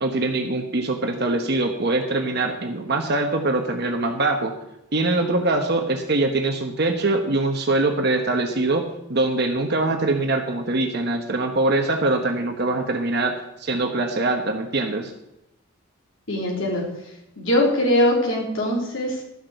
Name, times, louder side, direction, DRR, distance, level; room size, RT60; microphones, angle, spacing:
voice 1, 0.0-4.5 4.9-15.1, right 2 dB, 55° right, 4 dB, 1.1 m, -23 dB
voice 2, 16.3-16.9 17.4-19.2, left 1 dB, 65° left, -1 dB, 3.6 m, -21 dB
12.0 x 6.6 x 7.8 m, 0.87 s
head